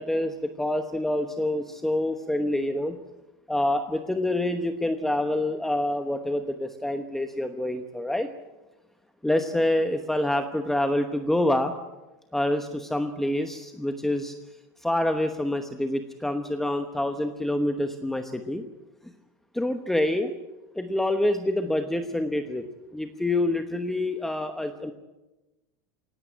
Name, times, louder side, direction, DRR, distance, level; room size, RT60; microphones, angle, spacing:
voice 1, 0.0-3.0 3.5-8.3 9.2-11.7 12.3-14.3 14.8-18.6 19.5-20.4 20.7-22.7 22.9-24.9, left 1 dB, 5° left, 7 dB, 1.1 m, -26 dB
18.5 x 16.5 x 9.8 m, 1.1 s
supercardioid pair, 145°, 10 cm